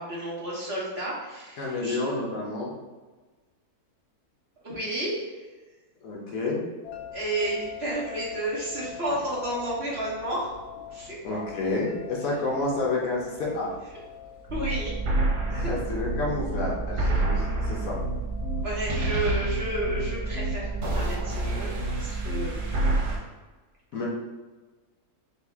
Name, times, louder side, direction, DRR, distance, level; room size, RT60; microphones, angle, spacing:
voice 1, 0.0-2.0 4.6-5.3 7.1-10.5 10.9-11.4 14.5-14.9 17.1-17.3 18.5-22.7, right 1 dB, 45° right, -7 dB, 1.2 m, -31 dB
voice 2, 1.6-2.7 6.0-6.6 11.2-13.7 15.5-18.0 23.9-24.1, left 2 dB, 65° left, -3 dB, 1.2 m, -29 dB
sound 1, 6.8-21.5, left 8 dB, 90° left, 1.2 m, -45 dB
sound 2, 14.5-23.2, right 2 dB, 80° right, 1.5 m, -28 dB
4.0 x 2.8 x 3.4 m, 1.3 s
omnidirectional pair, 1.7 m